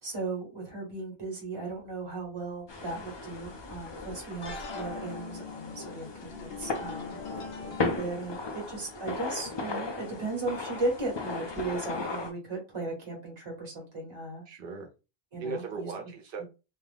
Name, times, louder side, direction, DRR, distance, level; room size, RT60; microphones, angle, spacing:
voice 1, 0.0-7.2 8.0-14.4 15.3-15.9 16.4-16.5, right 2 dB, 30° right, -1 dB, 1.1 m, -36 dB
sound 1, 1.8-1.9 4.4-8.0, left 4 dB, 70° left, 0.9 m, -41 dB
sound 2, 2.7-12.3, left 3 dB, 40° left, 0.4 m, -37 dB
voice 2, 7.6-8.0 14.5-14.9 15.4-16.4, right 4 dB, 60° right, 3 dB, 0.9 m, -38 dB
2.5 x 2.4 x 3.4 m, 0.30 s
omnidirectional pair, 1.1 m